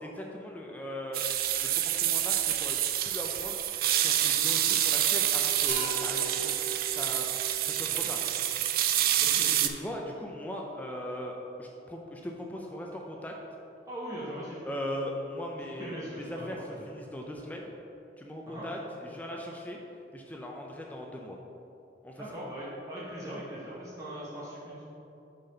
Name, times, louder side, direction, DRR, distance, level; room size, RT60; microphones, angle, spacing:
voice 1, 0.0-1.2 1.6-3.6 3.9-6.6 6.9-7.3 7.6-8.2 9.6-13.3 14.7-17.8 18.2-19.8 20.1-21.4 22.0-22.2, left 1 dB, 10° left, 0 dB, 0.4 m, -39 dB
sound 1, 1.1-9.7, right 11 dB, 55° right, 0.4 m, -27 dB
sound 2, 5.7-9.3, right 2 dB, 80° right, 1.3 m, -42 dB
voice 2, 9.2-9.5 13.9-14.6 15.6-16.9 18.5-18.7 22.2-24.8, equal, 20° right, -9 dB, 1.0 m, -40 dB
6.5 x 4.1 x 5.4 m, 2.9 s
head